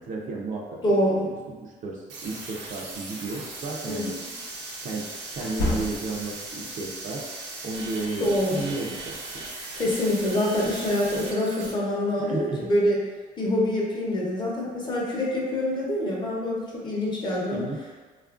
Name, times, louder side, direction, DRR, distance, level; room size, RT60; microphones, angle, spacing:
voice 1, 0.0-1.3 1.6-4.2 4.8-7.2 7.6-9.4 12.3-12.6 17.5-17.8, right 3 dB, 50° right, -1 dB, 0.5 m, -33 dB
voice 2, 0.8-1.3 3.9-4.1 8.2-8.7 9.8-13.0 13.4-17.7, left 1 dB, 25° left, -4 dB, 0.7 m, -25 dB
sound 1, 2.1-11.7, right 2 dB, 90° right, 0.7 m, -38 dB
sound 2, 3.1-3.3 5.3-6.4, left 1 dB, 80° left, 0.7 m, -30 dB
2.9 x 2.4 x 2.4 m, 1.4 s
cardioid pair, 110°, 17 cm